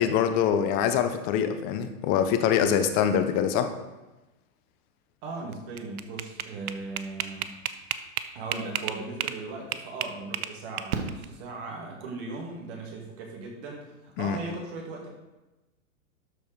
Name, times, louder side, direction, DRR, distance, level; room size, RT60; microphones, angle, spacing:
voice 1, 0.0-3.7 14.2-14.4, left 8 dB, 20° left, 9 dB, 0.5 m, -24 dB
voice 2, 5.2-7.5 8.3-15.1, right 3 dB, 50° right, -1 dB, 2.1 m, -38 dB
sound 1, 5.5-9.4 9.7-11.2, right 10 dB, 90° right, 0.8 m, -32 dB
Fireworks, 9.2-9.3 10.9-12.2 14.0-14.1 14.3-14.4, right 5 dB, 70° right, 1.3 m, -35 dB
12.5 x 4.6 x 5.0 m, 1.1 s
hypercardioid pair, 140°, 43 cm